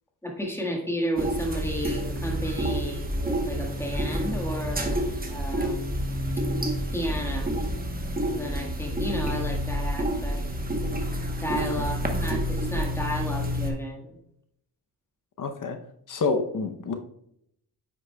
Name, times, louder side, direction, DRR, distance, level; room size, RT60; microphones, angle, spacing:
voice 1, 0.2-5.9 6.9-7.6 8.3-10.4 11.4-14.2, equal, 5° left, 1 dB, 1.5 m, -33 dB
sound 1, 1.2-13.7, equal, 20° right, 1.0 m, -29 dB
voice 2, 11.5-11.9 15.4-15.8 16.1-16.9, left 4 dB, 50° left, 7 dB, 0.7 m, -28 dB
9.3 x 6.1 x 2.2 m, 0.76 s
cardioid pair, 105°, 40 cm